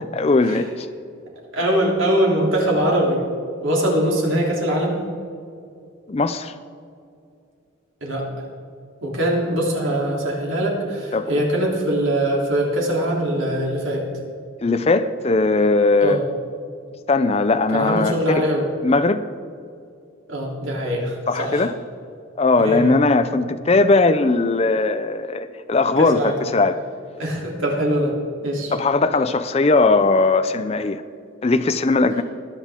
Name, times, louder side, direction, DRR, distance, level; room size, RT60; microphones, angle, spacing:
voice 1, 0.1-0.9 6.1-6.5 11.1-11.4 14.6-16.2 17.1-18.5 18.8-19.2 21.3-21.7 22.4-26.8 28.7-31.0 31.4-32.2, left 3 dB, 30° left, 10 dB, 0.4 m, -19 dB
voice 2, 1.5-3.2 3.6-5.0 8.0-8.2 9.0-14.1 16.0-16.2 17.7-18.6 20.3-21.6 22.6-22.9 26.0-26.4 27.2-28.1 28.4-28.7, right 1 dB, 80° right, -2 dB, 3.3 m, -22 dB
20.5 x 10.0 x 3.7 m, 2.4 s
head